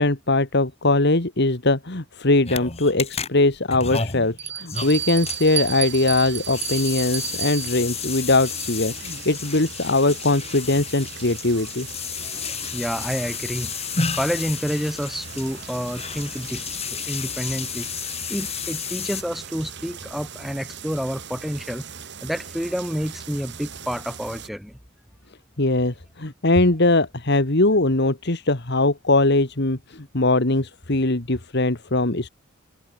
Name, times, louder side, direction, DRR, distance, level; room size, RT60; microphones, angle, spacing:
voice 1, 0.0-11.9 25.6-32.3, left 2 dB, 55° left, 2.0 m, -21 dB
sound 1, 2.5-19.2, left 6 dB, 30° left, 2.9 m, -32 dB
Bell, 2.8-2.9 3.5-3.6 4.4-8.9, right 9 dB, 30° right, 2.4 m, -32 dB
sound 2, 4.7-24.5, right 6 dB, 55° right, 7.0 m, -40 dB
voice 2, 12.7-13.7 14.1-17.9 18.3-21.8 22.2-24.7, equal, ahead, 2.3 m, -29 dB
head